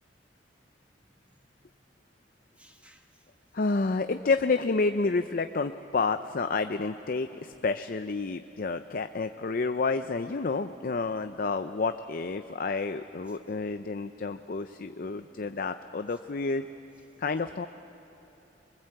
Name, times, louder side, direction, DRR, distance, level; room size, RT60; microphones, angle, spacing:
voice 1, 0.9-1.4 2.6-3.3 13.3-13.4 14.9-15.6, equal, 5° right, 3 dB, 1.5 m, -62 dB
voice 2, 3.5-16.6 17.2-17.7, left 3 dB, 50° left, 9 dB, 0.6 m, -29 dB
27.0 x 21.5 x 7.9 m, 2.9 s
head